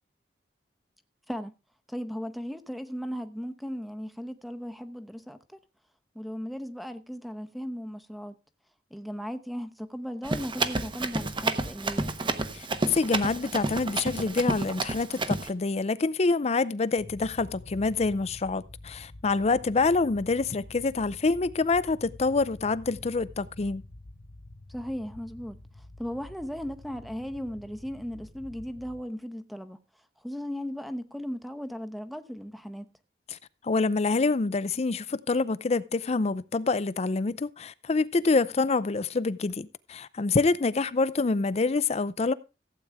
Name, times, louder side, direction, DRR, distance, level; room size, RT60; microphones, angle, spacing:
voice 1, 1.9-5.6 6.1-8.3 8.9-12.1 24.7-25.6 26.0-29.8 30.2-32.9, equal, ahead, 0.9 m, -36 dB
Run, 10.2-15.5, right 2 dB, 30° right, 1.0 m, -30 dB
voice 2, 12.5-23.8 33.3-33.4 33.6-42.3, left 3 dB, 40° left, 0.5 m, -26 dB
sound 1, 17.0-29.0, left 1 dB, 55° left, 0.9 m, -48 dB
15.5 x 8.6 x 3.5 m
head